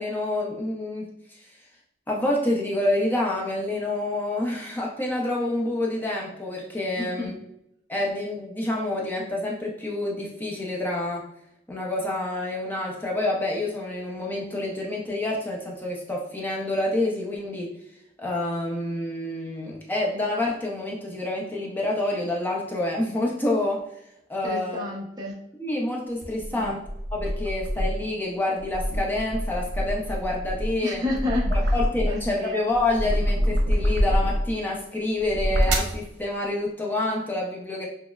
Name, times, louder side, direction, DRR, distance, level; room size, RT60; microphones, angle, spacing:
voice 1, 0.0-1.4 2.1-7.3 7.9-11.3 11.7-17.7 18.2-23.9 24.3-24.8 25.6-26.8 27.1-31.0 31.5-37.9, left 2 dB, 10° left, -2 dB, 0.6 m, -28 dB
voice 2, 7.0-7.3 24.4-25.3 26.5-26.8 30.8-31.7 32.1-32.6, left 2 dB, 25° right, -3 dB, 0.8 m, -30 dB
sound 1, 26.2-28.1 28.6-32.3 32.7-34.6 35.2-36.0, equal, 85° right, 0.7 m, -25 dB
6.0 x 2.0 x 2.3 m, 0.78 s
head